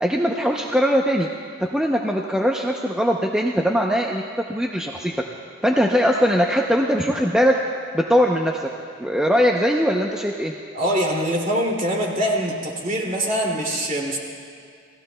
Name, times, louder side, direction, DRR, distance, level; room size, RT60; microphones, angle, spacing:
voice 1, 0.0-1.3 1.6-4.2 4.5-5.1 5.6-7.5 7.9-8.7 9.0-10.5, equal, 5° right, 0 dB, 0.6 m, -20 dB
voice 2, 10.7-14.2, equal, 40° right, -2 dB, 2.5 m, -23 dB
29.5 x 17.5 x 2.2 m, 2.3 s
head